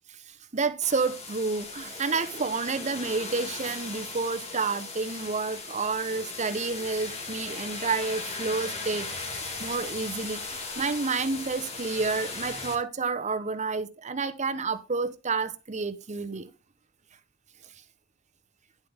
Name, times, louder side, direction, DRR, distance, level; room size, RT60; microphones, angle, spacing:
voice 1, 0.1-9.1 9.6-16.5, right 4 dB, 35° right, 0.9 m, -30 dB
sound 1, 0.8-12.7, left 3 dB, 30° left, 2.2 m, -37 dB
10.5 x 7.8 x 3.5 m
head